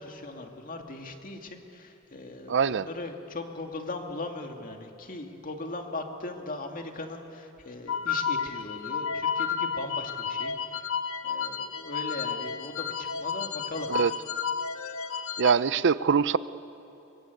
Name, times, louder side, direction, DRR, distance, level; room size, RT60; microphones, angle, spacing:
voice 1, 0.0-10.9 11.2-13.9, left 2 dB, 40° left, 3 dB, 2.2 m, -39 dB
voice 2, 2.5-2.9 13.9-14.1 15.4-16.4, right 6 dB, 60° right, 16 dB, 0.6 m, -23 dB
sound 1, 7.9-15.5, left 6 dB, 75° left, 1.0 m, -31 dB
23.5 x 23.5 x 9.2 m, 2.9 s
head